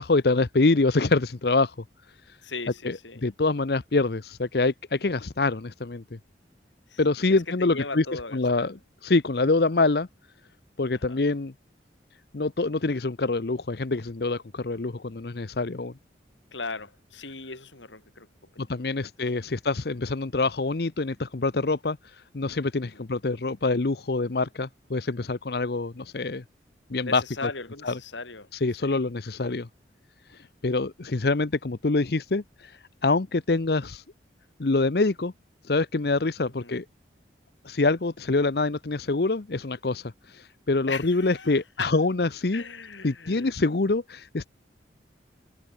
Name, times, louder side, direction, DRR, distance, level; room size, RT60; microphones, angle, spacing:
voice 1, 0.0-1.7 2.3-2.4 2.8-6.2 7.0-10.1 10.8-11.5 12.3-15.9 18.6-26.4 26.9-27.5 27.8-28.0 28.5-29.7 30.3-34.0 34.6-35.3 35.6-36.8 37.6-42.6 43.0-44.5, left 3 dB, 55° left, 0.8 m, -25 dB
voice 2, 2.4-3.2 6.9-7.0 7.3-8.7 10.9-11.2 16.5-18.3 19.0-19.1 19.4-19.6 22.9-23.1 27.0-28.5 28.8-29.0 36.5-36.8 40.9-41.9 42.5-43.5, left 4 dB, 85° left, 5.2 m, -38 dB
head